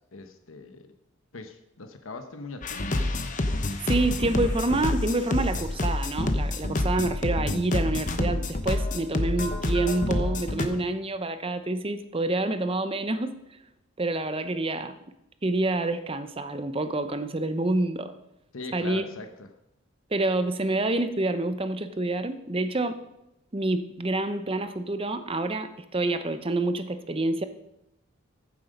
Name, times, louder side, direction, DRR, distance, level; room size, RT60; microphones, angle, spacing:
voice 1, 0.1-0.9 1.3-3.2 18.5-19.5, left 3 dB, 65° left, 7 dB, 1.0 m, -41 dB
sound 1, 2.6-10.7, left 1 dB, 35° left, 0.9 m, -27 dB
voice 2, 3.8-13.4 14.0-15.0 15.4-18.2 18.7-19.1 20.1-23.0 23.5-27.4, right 2 dB, 25° right, 10 dB, 0.7 m, -27 dB
14.5 x 7.5 x 5.2 m, 0.87 s
head